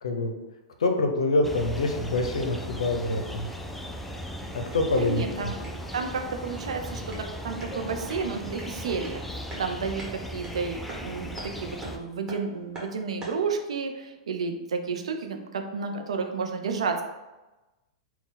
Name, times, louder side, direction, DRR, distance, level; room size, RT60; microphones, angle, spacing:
voice 1, 0.8-3.5 4.5-5.5, left 2 dB, 80° left, 4 dB, 0.6 m, -26 dB
sound 1, 1.4-12.0, equal, 5° left, 0.4 m, -37 dB
sound 2, 4.4-13.5, right 1 dB, 20° right, 1.4 m, -46 dB
voice 2, 5.0-7.1 7.4-17.0, right 5 dB, 80° right, 5 dB, 0.5 m, -31 dB
4.1 x 2.3 x 3.8 m, 1.1 s
hypercardioid pair, 110°, 3 cm